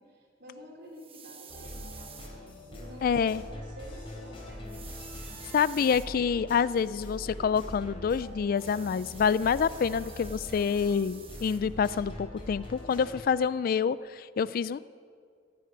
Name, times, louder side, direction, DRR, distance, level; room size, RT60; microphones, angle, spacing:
voice 1, 0.0-4.9 5.1-5.6, equal, 65° right, -4 dB, 4.5 m, -49 dB
sound 1, 0.9-2.3 4.7-6.1 8.5-11.6, right 7 dB, 30° right, 1.1 m, -49 dB
sound 2, 1.5-13.2, left 1 dB, 30° left, 3.5 m, -43 dB
voice 2, 3.0-3.4 5.5-14.8, left 6 dB, 50° left, 18 dB, 0.3 m, -27 dB
16.0 x 7.8 x 9.4 m, 2.2 s
head